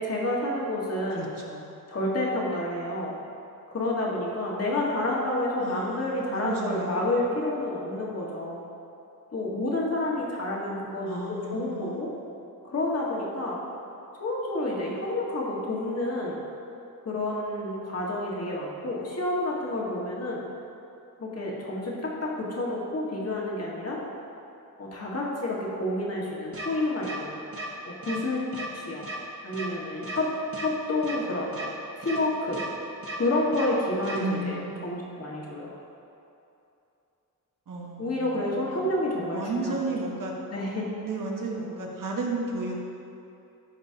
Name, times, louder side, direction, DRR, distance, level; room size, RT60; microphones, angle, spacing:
voice 1, 0.0-1.3 1.9-3.1 3.7-8.6 9.3-12.1 12.6-13.6 14.1-16.4 17.0-20.4 21.2-24.0 24.8-27.3 27.8-28.4 28.7-29.1 29.4-30.3 30.6-31.6 32.0-32.6 33.1-35.7 38.0-39.8 40.5-40.9, left 1 dB, 45° left, -4 dB, 1.7 m, -29 dB
voice 2, 1.1-1.7 5.6-7.0 11.0-12.1 34.2-35.2 37.7-38.8 39.3-40.3 41.0-42.8, right 3 dB, 65° right, -1 dB, 1.4 m, -34 dB
sound 1, 26.5-26.7 27.0-27.2 27.5-27.7 28.0-28.2 28.5-28.7 29.0-29.2 29.5-29.7 30.0-30.2 30.5-30.7 31.0-31.2 31.5-31.7 32.0-32.2 32.5-32.7 33.0-33.2 33.5-33.7 34.0-34.2, right 1 dB, 40° right, 1.6 m, -35 dB
14.0 x 5.3 x 2.9 m, 2.7 s
wide cardioid pair, 100°, 35 cm